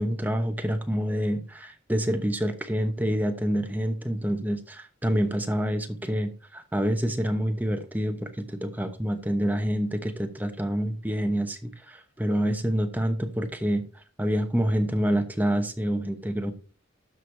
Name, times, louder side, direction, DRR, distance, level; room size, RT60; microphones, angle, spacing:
voice 1, 0.0-13.9 14.2-16.5, equal, 10° right, 0.9 m, -27 dB
13.0 x 4.8 x 3.3 m
head